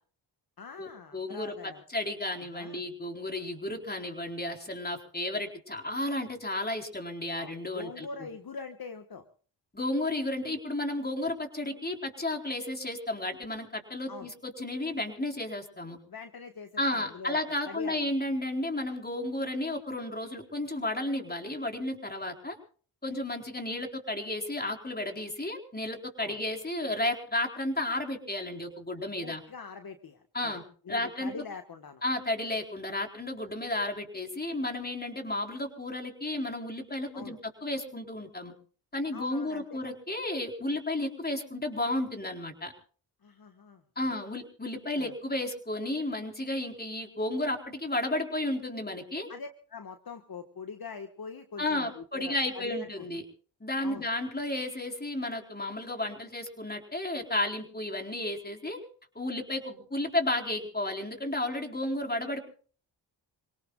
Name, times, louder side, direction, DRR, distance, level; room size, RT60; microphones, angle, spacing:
voice 1, 0.6-1.8 2.5-2.8 7.4-9.2 14.1-14.3 16.1-18.0 26.2-26.4 29.2-32.0 37.1-37.4 39.1-39.8 43.2-43.8 44.9-45.1 49.3-53.2 53.8-54.1, left 5 dB, 50° left, 7 dB, 1.5 m, -43 dB
voice 2, 1.1-8.1 9.7-16.0 16.8-22.6 23.0-29.4 30.3-30.6 30.9-31.4 32.0-38.5 38.9-42.7 44.0-49.3 51.6-53.2 53.6-58.8 59.1-62.4, left 1 dB, 20° left, 3 dB, 4.1 m, -33 dB
27.5 x 18.0 x 2.4 m, 0.41 s
cardioid pair, 60°, 48 cm